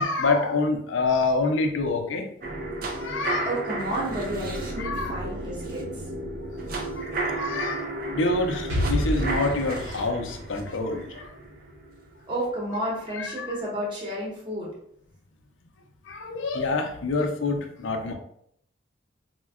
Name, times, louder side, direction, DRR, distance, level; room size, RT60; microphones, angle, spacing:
voice 1, 0.0-2.3 3.0-3.5 4.8-5.3 7.0-7.1 7.4-7.9 8.1-11.3 13.1-13.6 16.1-18.1, left 3 dB, 90° left, 5 dB, 0.5 m, -27 dB
sound 1, 2.4-12.4 12.8-12.9, right 2 dB, 50° right, 0.4 m, -33 dB
voice 2, 3.5-5.9 12.3-14.7, right 1 dB, 25° right, -4 dB, 0.8 m, -31 dB
Explosion, 8.7-12.5, left 1 dB, 75° right, 0.8 m, -31 dB
4.4 x 2.1 x 2.3 m, 0.70 s
head